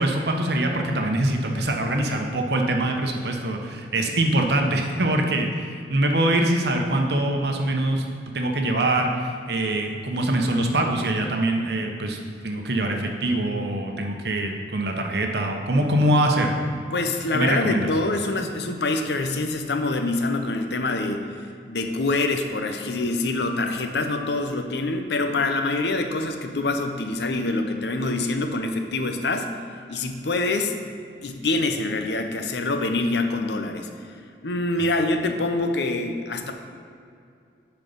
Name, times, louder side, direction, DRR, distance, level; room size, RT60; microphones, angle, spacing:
voice 1, 0.0-8.0 8.3-16.5 17.3-17.9, right 1 dB, 65° right, 3 dB, 0.9 m, -23 dB
voice 2, 16.9-21.3 21.6-29.5 29.9-30.7 31.2-33.9 34.4-36.5, left 2 dB, 70° left, 6 dB, 0.7 m, -25 dB
9.5 x 4.6 x 5.3 m, 2.4 s
head